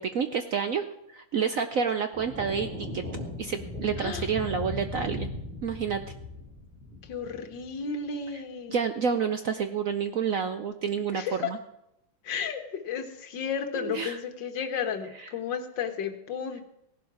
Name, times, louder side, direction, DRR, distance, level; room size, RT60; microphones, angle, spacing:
voice 1, 0.0-3.0 3.4-5.3 5.6-6.0 8.7-11.6 13.7-14.2 15.2-15.3, right 6 dB, 75° right, 8 dB, 0.7 m, -29 dB
sound 1, 2.1-7.8, left 2 dB, 5° left, 5.1 m, -38 dB
voice 2, 7.0-8.8 11.1-11.5 12.2-16.6, left 6 dB, 60° left, 7 dB, 1.9 m, -33 dB
17.0 x 11.5 x 4.8 m, 0.82 s
omnidirectional pair, 2.3 m